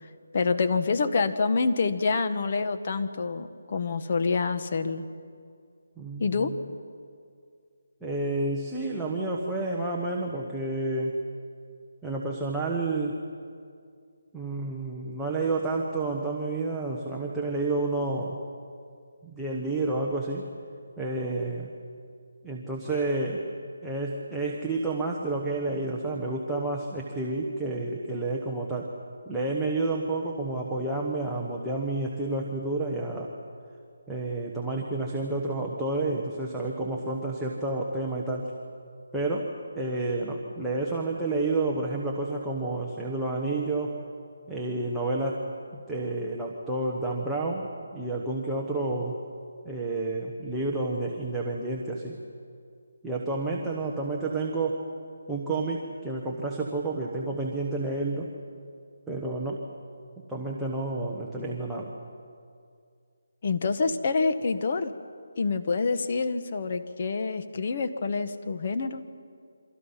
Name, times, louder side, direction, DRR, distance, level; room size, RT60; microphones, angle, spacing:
voice 1, 0.3-5.1 6.2-6.5 63.4-64.9 65.4-69.0, left 4 dB, 35° left, 9 dB, 1.2 m, -27 dB
voice 2, 6.0-6.6 8.0-11.2 12.0-13.1 14.3-18.4 19.2-20.4 21.0-21.7 22.4-23.4 23.8-28.9 29.3-33.3 34.1-38.5 39.1-44.0 44.5-45.4 45.7-49.2 49.6-52.2 53.0-54.8 55.3-58.3 59.1-59.6 60.3-61.9, right 2 dB, ahead, -5 dB, 1.2 m, -30 dB
28.0 x 25.0 x 5.8 m, 2.2 s
hypercardioid pair, 175°, 0 cm